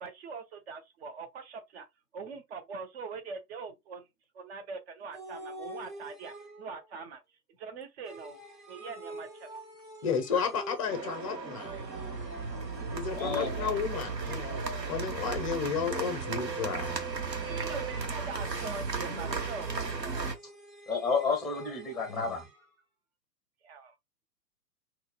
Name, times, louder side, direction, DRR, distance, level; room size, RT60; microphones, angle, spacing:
voice 1, 0.0-1.9 2.1-4.0 4.3-7.2 7.6-8.4 8.7-9.6 13.6-14.7 17.4-20.3 23.6-23.9, right 4 dB, 40° right, 0.8 m, -43 dB
sound 1, 5.1-6.8 8.0-11.1 11.6-13.9 14.5-15.2 15.8-18.6 19.1-22.6, right 3 dB, 20° right, 1.1 m, -45 dB
voice 2, 10.0-11.7 12.9-16.9 22.1-22.4, left 6 dB, 20° left, 0.5 m, -32 dB
sound 2, 10.9-20.3, right 4 dB, 85° right, 1.0 m, -35 dB
voice 3, 13.1-13.7 20.9-22.4, left 5 dB, ahead, 0.9 m, -31 dB
4.0 x 2.2 x 2.3 m
figure-of-eight pair, 110°, 49 cm